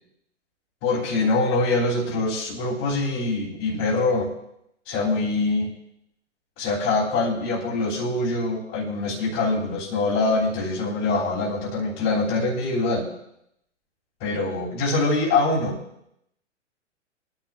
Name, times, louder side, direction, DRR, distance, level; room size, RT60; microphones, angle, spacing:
voice 1, 0.8-4.3 4.8-5.7 6.6-13.1 14.2-15.8, left 3 dB, 35° left, -7 dB, 3.3 m, -24 dB
28.0 x 10.5 x 2.5 m, 0.76 s
figure-of-eight pair, 110°, 36 cm